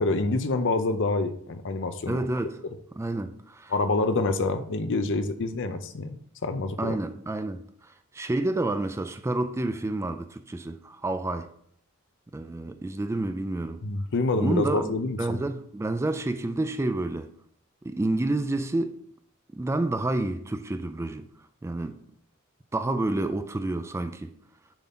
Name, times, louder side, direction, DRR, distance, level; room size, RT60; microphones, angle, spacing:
voice 1, 0.0-2.2 3.7-7.0 13.8-15.4, left 3 dB, 60° left, 0.6 m, -27 dB
voice 2, 2.1-2.6 3.0-3.7 6.8-11.5 12.3-13.8 14.3-17.3 17.8-19.0 19.5-21.3 21.6-22.0 22.7-24.4, right 2 dB, 15° right, 0.3 m, -29 dB
7.1 x 4.0 x 4.2 m
head